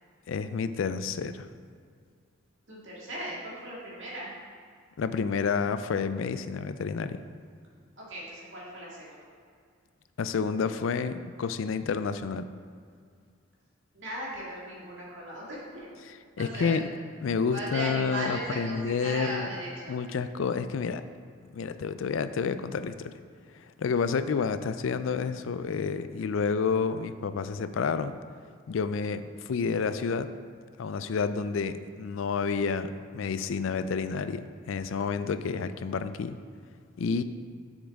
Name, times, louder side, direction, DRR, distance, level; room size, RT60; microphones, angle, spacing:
voice 1, 0.3-1.5 5.0-7.2 10.2-12.5 16.4-16.8 17.2-19.5 19.9-21.0 21.5-23.1 23.5-28.2 28.7-30.3 30.8-36.4 37.0-37.2, left 5 dB, 70° left, 12 dB, 0.4 m, -29 dB
voice 2, 2.7-4.3 8.0-9.2 13.9-15.9 16.4-16.8 17.5-20.0, right 1 dB, 60° right, -5 dB, 2.0 m, -37 dB
7.3 x 6.9 x 3.5 m, 2.1 s
head